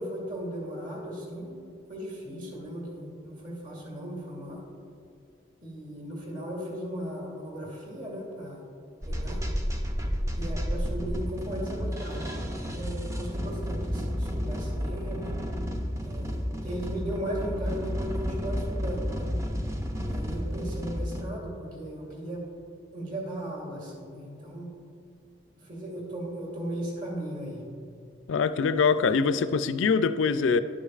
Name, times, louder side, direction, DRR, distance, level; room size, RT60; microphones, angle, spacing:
voice 1, 0.0-1.6 1.9-4.6 5.6-8.6 9.0-9.4 10.4-12.4 12.7-15.4 16.0-19.3 20.0-22.4 22.9-24.7 25.6-27.7, right 1 dB, 40° right, -3 dB, 2.0 m, -37 dB
sound 1, 9.0-21.3, equal, 15° right, 0.5 m, -31 dB
voice 2, 28.3-30.6, left 5 dB, 75° left, 13 dB, 0.4 m, -23 dB
11.5 x 8.3 x 2.4 m, 2.5 s
head